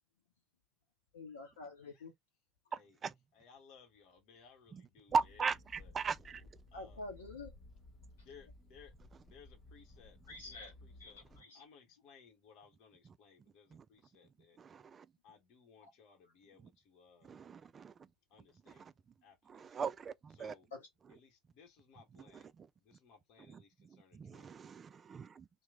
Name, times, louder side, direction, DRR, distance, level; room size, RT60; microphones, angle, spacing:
voice 1, 1.1-2.1 6.7-7.5 8.3-8.4 10.3-10.7 11.0-11.6 15.8-15.9 20.7-20.9, left 3 dB, 75° left, 0.7 m, -48 dB
voice 2, 3.4-5.1 5.8-5.9 6.7-7.0 8.2-8.9 9.2-10.2 11.0-11.2 11.5-14.6 15.2-17.3 18.3-18.8 19.2-19.6 20.4-20.7 21.2-22.5 22.8-23.7 24.0-24.4, left 6 dB, 55° left, 0.9 m, -61 dB
voice 3, 4.7-6.4 13.7-13.8 14.6-15.1 17.2-17.9 18.8-18.9 19.5-20.5 22.1-22.7 23.5-23.6 24.1-25.4, right 5 dB, 30° right, 0.3 m, -39 dB
sound 1, 5.1-11.4, left 2 dB, 25° left, 1.2 m, -57 dB
3.0 x 2.1 x 3.5 m
figure-of-eight pair, 65°, 0 cm